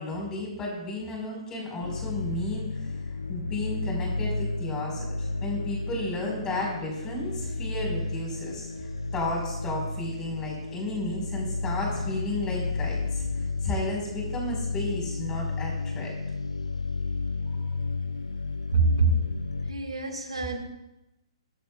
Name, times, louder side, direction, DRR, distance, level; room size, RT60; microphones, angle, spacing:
voice 1, 0.0-2.9 3.3-8.7 9.1-13.2 13.6-16.1, left 2 dB, 20° left, -1 dB, 5.7 m, -33 dB
sound 1, 1.8-19.7, left 3 dB, 85° left, 0.8 m, -32 dB
voice 2, 18.7-19.3 19.7-20.6, right 3 dB, 80° right, 4 dB, 2.2 m, -25 dB
23.0 x 11.0 x 2.6 m, 0.94 s
figure-of-eight pair, 125°, 3 cm